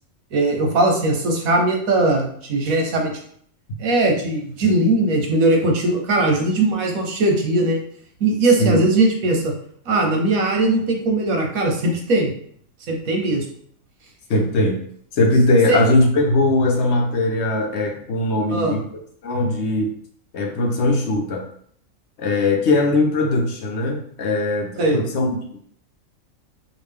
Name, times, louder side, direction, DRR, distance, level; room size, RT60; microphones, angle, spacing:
voice 1, 0.3-3.1 3.8-7.8 8.2-9.5 9.9-12.3 12.9-13.4 15.7-15.8 18.5-18.7 24.8-25.0, right 2 dB, 90° right, 2 dB, 1.4 m, -19 dB
voice 2, 14.3-14.8 15.1-18.8 19.2-19.9 20.3-21.4 22.2-25.3, left 2 dB, 60° left, 2 dB, 0.9 m, -20 dB
4.9 x 2.5 x 3.5 m, 0.62 s
omnidirectional pair, 1.4 m